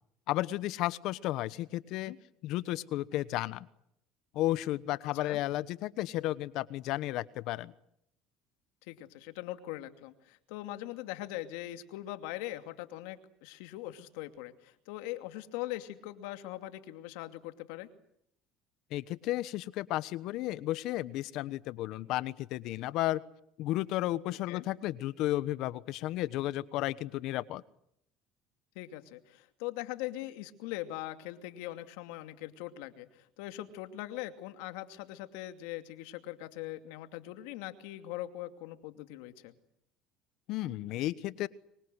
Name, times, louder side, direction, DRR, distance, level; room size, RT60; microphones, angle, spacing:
voice 1, 0.3-2.1 2.4-3.7 4.3-7.7 18.9-23.2 23.6-27.6 40.5-41.5, left 15 dB, 65° left, 17 dB, 1.1 m, -33 dB
voice 2, 5.0-5.4 8.8-17.9 24.5-24.6 28.7-39.5, left 15 dB, 85° left, 9 dB, 2.6 m, -41 dB
25.0 x 24.5 x 8.1 m, 0.74 s
supercardioid pair, 105°, 0 cm